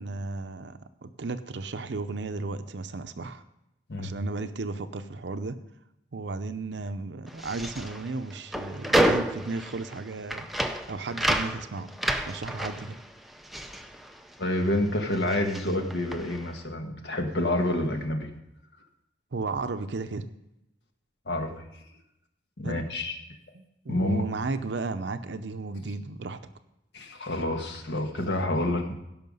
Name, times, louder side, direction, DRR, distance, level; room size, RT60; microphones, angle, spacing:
voice 1, 0.0-3.4 4.0-5.6 6.1-10.5 10.9-11.9 12.3-13.0 19.3-20.3 22.6-22.8 23.5-26.4, right 3 dB, 80° right, 10 dB, 0.6 m, -34 dB
sound 1, 7.3-14.8 15.0-16.5, right 1 dB, ahead, 0.5 m, -30 dB
voice 2, 14.4-18.3 21.3-21.6 22.6-23.1 23.9-24.3 26.9-28.9, left 1 dB, 75° left, 4 dB, 1.5 m, -28 dB
16.5 x 5.8 x 5.4 m, 0.86 s
head